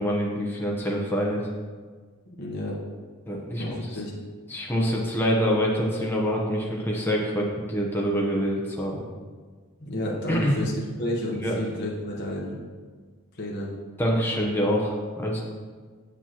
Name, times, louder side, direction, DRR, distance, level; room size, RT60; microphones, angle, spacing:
voice 1, 0.0-1.5 3.3-3.7 4.5-9.0 10.3-10.6 11.4-11.5 14.0-15.4, equal, 10° left, -2 dB, 0.8 m, -25 dB
voice 2, 2.3-2.8 3.6-4.1 9.8-10.7 11.0-12.6 13.3-13.7, left 1 dB, 50° left, -4 dB, 1.0 m, -31 dB
7.7 x 7.1 x 2.9 m, 1.5 s
head